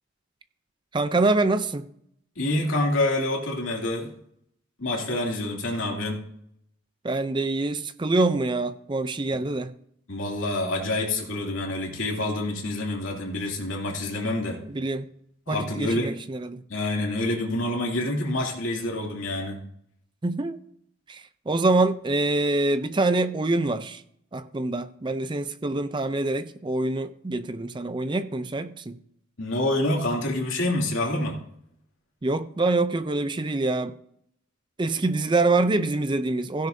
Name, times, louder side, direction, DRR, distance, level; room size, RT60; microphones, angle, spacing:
voice 1, 0.9-1.9 7.0-9.7 14.7-15.1 15.5-16.6 20.2-20.6 21.1-24.0 24.3-29.0 32.2-34.0 34.8-36.7, right 2 dB, 25° right, 0.4 m, -25 dB
voice 2, 2.4-4.1 4.8-6.2 10.1-14.6 15.5-16.1 16.7-19.6 29.4-31.4, left 1 dB, 75° left, 2.6 m, -27 dB
16.0 x 10.5 x 2.7 m
head